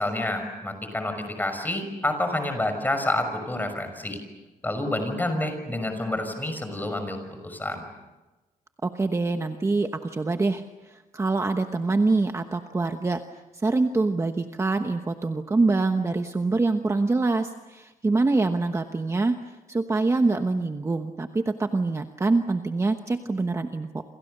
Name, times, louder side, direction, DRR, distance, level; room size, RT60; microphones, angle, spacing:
voice 1, 0.0-4.2 4.6-7.2 7.4-7.9, left 1 dB, 15° left, 7 dB, 5.9 m, -28 dB
voice 2, 8.8-13.2 13.6-24.0, right 3 dB, 20° right, 6 dB, 1.1 m, -25 dB
29.0 x 27.5 x 6.6 m, 1.1 s
cardioid pair, 135°, 14 cm